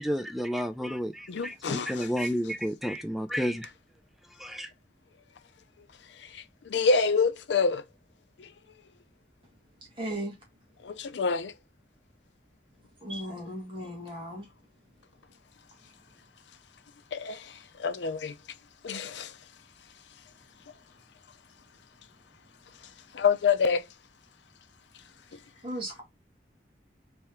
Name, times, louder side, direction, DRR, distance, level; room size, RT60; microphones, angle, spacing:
voice 1, 0.0-3.7 4.4-4.7, equal, ahead, 0.3 m, -31 dB
voice 2, 1.3-2.1 6.3-7.8 8.4-8.5 10.8-11.5 17.1-18.3 18.8-19.3 23.1-23.8, left 5 dB, 90° left, 0.5 m, -27 dB
voice 3, 10.0-10.3 13.0-14.5 25.6-26.0, equal, 30° right, 1.6 m, -36 dB
3.5 x 3.3 x 2.9 m
head